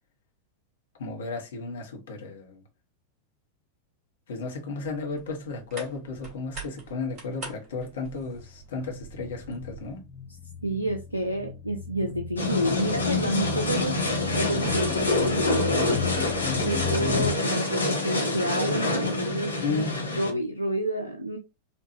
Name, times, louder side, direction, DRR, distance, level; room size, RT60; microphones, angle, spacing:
voice 1, 1.0-2.6 4.3-10.0 19.6-19.9, left 4 dB, 60° left, 1.1 m, -33 dB
sound 1, 4.8-10.0, right 4 dB, 35° right, 2.3 m, -45 dB
sound 2, 8.3-17.3, left 6 dB, 5° left, 1.0 m, -35 dB
voice 2, 10.6-14.0 14.3-16.0 16.6-21.4, right 1 dB, 85° right, 0.5 m, -29 dB
sound 3, 12.4-20.3, left 2 dB, 80° left, 0.9 m, -27 dB
4.4 x 2.5 x 2.7 m
figure-of-eight pair, 90°, 0 cm